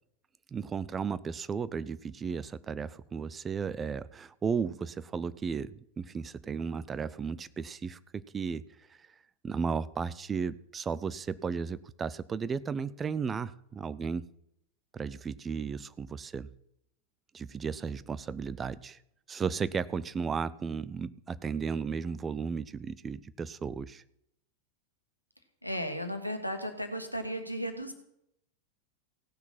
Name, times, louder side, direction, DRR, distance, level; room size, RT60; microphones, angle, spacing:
voice 1, 0.5-9.1 9.4-14.2 14.9-16.5 17.3-19.0 19.3-24.0, right 6 dB, 20° right, 17 dB, 0.5 m, -34 dB
voice 2, 25.6-27.9, equal, 90° left, 5 dB, 1.4 m, -35 dB
16.5 x 6.0 x 5.9 m, 0.78 s
figure-of-eight pair, 90°, 0 cm